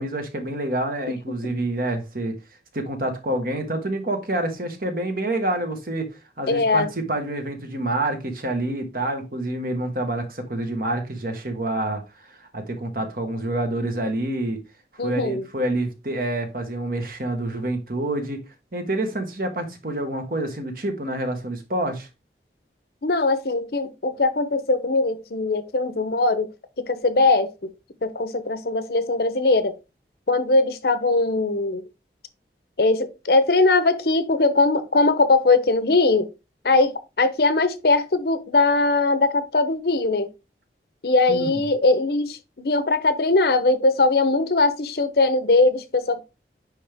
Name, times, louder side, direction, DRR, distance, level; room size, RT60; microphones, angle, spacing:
voice 1, 0.0-2.3 2.7-6.1 6.4-14.6 15.0-18.4 18.7-22.1 41.3-41.5, right 1 dB, 55° right, 1.4 m, -27 dB
voice 2, 6.5-6.9 15.0-15.4 23.0-26.5 26.8-27.7 28.0-29.8 30.3-31.8 32.8-36.3 36.6-40.3 41.0-46.2, left 3 dB, 60° left, 0.7 m, -20 dB
9.7 x 3.5 x 3.4 m
head